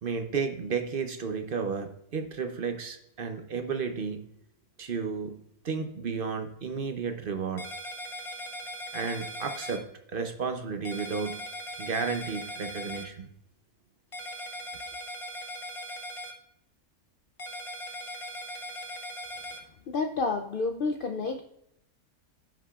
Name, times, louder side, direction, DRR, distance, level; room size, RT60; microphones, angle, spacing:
voice 1, 0.0-4.3 4.8-7.6 8.9-9.9 10.1-11.5 11.8-13.3, right 5 dB, 50° right, 6 dB, 0.7 m, -32 dB
sound 1, 7.6-9.8 10.8-13.0 14.1-16.3 17.4-19.6, equal, 30° left, 0.6 m, -39 dB
voice 2, 19.9-21.4, left 4 dB, 80° left, 5 dB, 0.4 m, -29 dB
14.5 x 5.8 x 2.4 m, 0.75 s
omnidirectional pair, 1.6 m